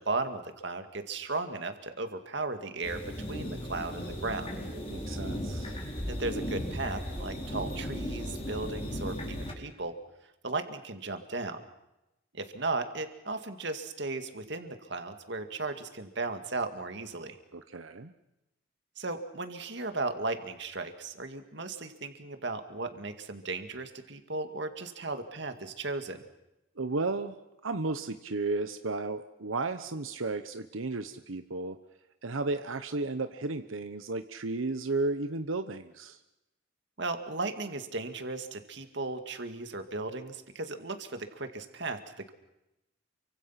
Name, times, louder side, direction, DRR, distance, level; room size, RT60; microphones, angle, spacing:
voice 1, 0.0-4.5 6.1-10.0 10.4-11.6 12.3-17.4 19.0-26.2 37.0-42.3, right 3 dB, 60° right, 7 dB, 2.2 m, -36 dB
sound 1, 2.8-9.5, equal, 30° left, 4.9 m, -36 dB
voice 2, 4.9-5.8 17.5-18.1 26.8-27.3 27.6-31.8 32.2-36.2, right 3 dB, 85° right, 9 dB, 1.0 m, -33 dB
29.0 x 24.5 x 5.9 m, 0.93 s
head